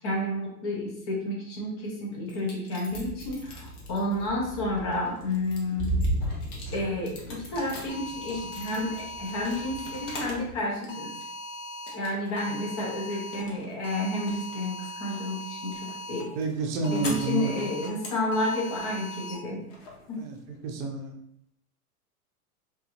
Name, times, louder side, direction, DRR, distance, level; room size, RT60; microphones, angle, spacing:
voice 1, 0.0-6.0 6.7-11.1 11.9-16.3 16.8-19.6 20.1-20.2, left 1 dB, 20° left, -2 dB, 0.3 m, -31 dB
sound 1, 2.3-4.3 4.8-10.5 10.8-11.4 11.9-12.5 12.7-20.7, left 2 dB, 40° left, 0.8 m, -45 dB
sound 2, 2.9-10.6, right 1 dB, 5° right, 1.3 m, -36 dB
sound 3, 7.9-10.3 10.9-11.9 12.4-13.4 13.8-16.2 16.8-17.9 18.3-19.3, left 1 dB, 85° left, 0.9 m, -39 dB
voice 2, 16.3-17.5 20.2-20.4 20.6-21.1, right 3 dB, 40° right, 2 dB, 0.6 m, -29 dB
2.6 x 2.4 x 2.5 m, 0.72 s
hypercardioid pair, 115°, 46 cm